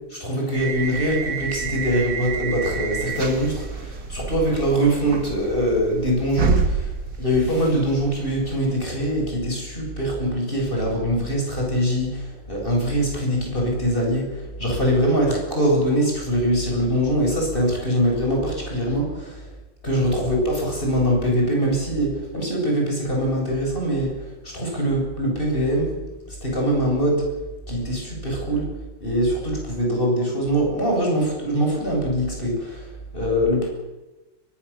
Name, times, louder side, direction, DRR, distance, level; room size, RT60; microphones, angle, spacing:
voice 1, 0.1-6.9 7.2-19.5 19.8-26.0 26.3-27.3 27.7-28.7 29.0-33.7, equal, 25° left, 0 dB, 7.9 m, -23 dB
sound 1, 0.5-8.9, right 4 dB, 50° right, 2.4 m, -29 dB
22.5 x 20.5 x 7.3 m, 1.1 s
omnidirectional pair, 2.2 m